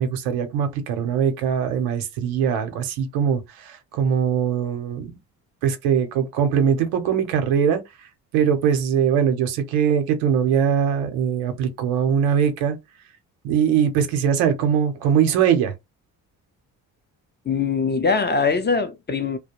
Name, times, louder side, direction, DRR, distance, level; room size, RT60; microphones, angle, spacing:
voice 1, 0.0-5.1 5.6-7.8 8.3-12.8 13.4-15.7, right 8 dB, 85° right, 0.7 m, -21 dB
voice 2, 17.5-19.4, left 4 dB, 25° left, 0.4 m, -22 dB
2.3 x 2.0 x 2.8 m
supercardioid pair, 55°, 46 cm